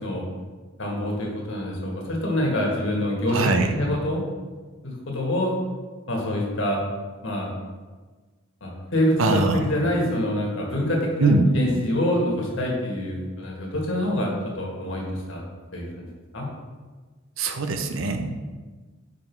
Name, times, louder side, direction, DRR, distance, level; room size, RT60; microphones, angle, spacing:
voice 1, 0.8-4.2 4.8-5.5 6.1-6.8 7.2-7.5 8.6-14.3 14.5-15.0 15.3-15.4 15.7-16.1 16.3-16.5, left 1 dB, 65° left, -2 dB, 1.6 m, -26 dB
voice 2, 3.3-3.7 9.2-9.6 11.2-11.5 17.4-18.4, right 3 dB, 75° right, 6 dB, 0.7 m, -22 dB
5.4 x 5.0 x 4.5 m, 1.4 s
head